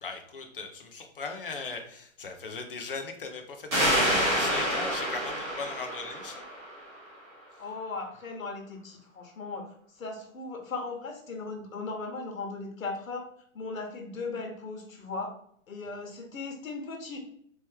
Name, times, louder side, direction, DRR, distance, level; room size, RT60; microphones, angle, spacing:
voice 1, 0.0-6.4, left 4 dB, 40° left, 4 dB, 0.6 m, -38 dB
sound 1, 3.7-7.1, equal, 20° right, 1.1 m, -28 dB
voice 2, 7.6-9.7 10.0-13.3 13.5-15.4 15.7-17.2, left 3 dB, 75° left, 3 dB, 1.4 m, -37 dB
4.3 x 3.0 x 3.4 m, 0.66 s
hypercardioid pair, 180°, 41 cm